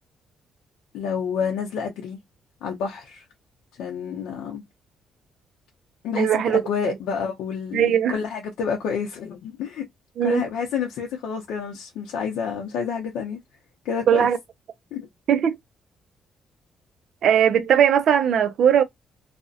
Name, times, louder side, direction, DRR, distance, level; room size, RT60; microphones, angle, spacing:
voice 1, 0.9-2.2 2.6-3.2 3.8-4.6 6.0-9.9 10.2-13.4 13.8-14.3 14.9-15.1, left 6 dB, 85° left, 0.5 m, -29 dB
voice 2, 6.1-6.9 7.7-8.2 10.2-10.4 14.1-14.4 15.3-15.6 17.2-18.8, right 9 dB, 70° right, 0.4 m, -19 dB
2.4 x 2.0 x 2.5 m
cardioid pair, 90°, 0 cm